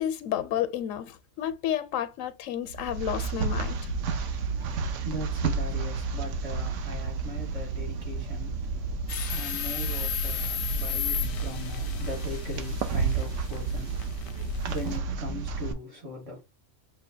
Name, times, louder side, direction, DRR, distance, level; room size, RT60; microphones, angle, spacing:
voice 1, 0.0-3.8, left 10 dB, 85° left, 1.0 m, -31 dB
sound 1, 2.7-15.7, right 4 dB, 70° right, 0.9 m, -31 dB
voice 2, 4.0-16.4, left 1 dB, 55° right, 2.2 m, -40 dB
sound 2, 9.1-15.0, left 9 dB, 55° left, 0.6 m, -35 dB
6.5 x 2.3 x 2.7 m
omnidirectional pair, 1.3 m